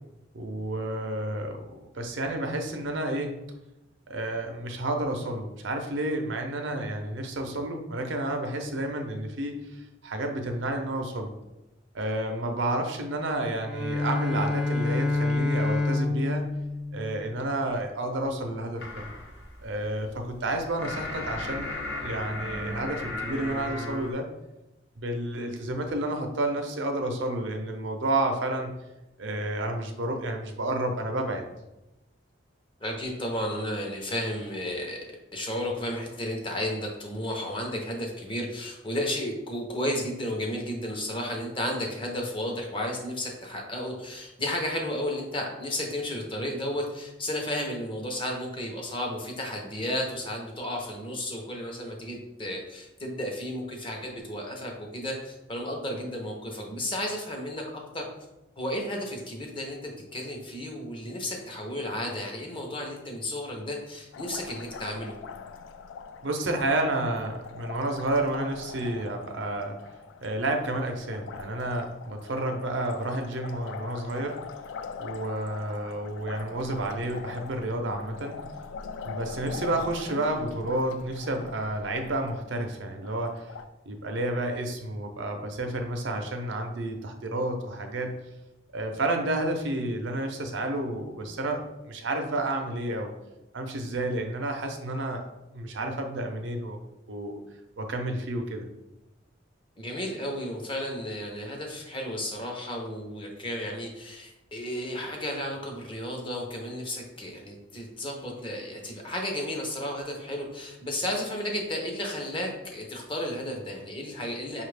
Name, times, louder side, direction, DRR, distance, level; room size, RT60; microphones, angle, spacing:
voice 1, 0.3-3.4 4.1-11.3 11.9-16.4 16.9-19.1 19.6-21.7 22.0-24.3 25.0-28.7 29.2-31.4 66.2-69.8 70.2-74.4 75.0-78.4 79.0-83.5 83.9-88.2 88.7-93.1 93.5-95.3 95.5-96.8 97.1-97.4 97.8-98.7, right 1 dB, 75° right, 4 dB, 0.6 m, -30 dB
Bowed string instrument, 13.6-17.7, left 2 dB, 5° right, 0.4 m, -28 dB
sound 1, 18.8-24.1, left 2 dB, 60° left, 0.8 m, -36 dB
voice 2, 32.8-35.0 35.3-58.1 58.6-65.1 99.8-114.6, left 1 dB, 25° left, 1 dB, 0.7 m, -33 dB
Liquid, 64.1-83.7, left 5 dB, 85° left, 0.3 m, -42 dB
5.4 x 2.4 x 3.3 m, 0.96 s
head